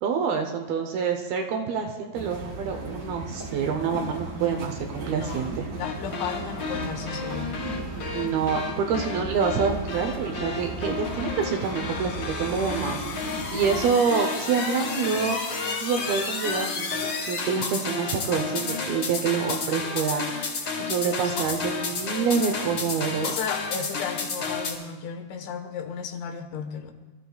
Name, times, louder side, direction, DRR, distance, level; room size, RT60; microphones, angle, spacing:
voice 1, 0.0-5.7 8.1-15.4 15.8-20.3 20.8-23.3, right 6 dB, 75° right, 4 dB, 2.4 m, -27 dB
sound 1, 2.1-13.9, right 2 dB, 45° right, 1.3 m, -36 dB
voice 2, 5.1-7.7 21.2-21.7 23.2-26.9, left 7 dB, 90° left, 6 dB, 3.6 m, -35 dB
sound 2, 5.8-24.7, left 4 dB, 45° left, 3.4 m, -31 dB
26.5 x 14.5 x 2.3 m, 1.3 s
omnidirectional pair, 5.1 m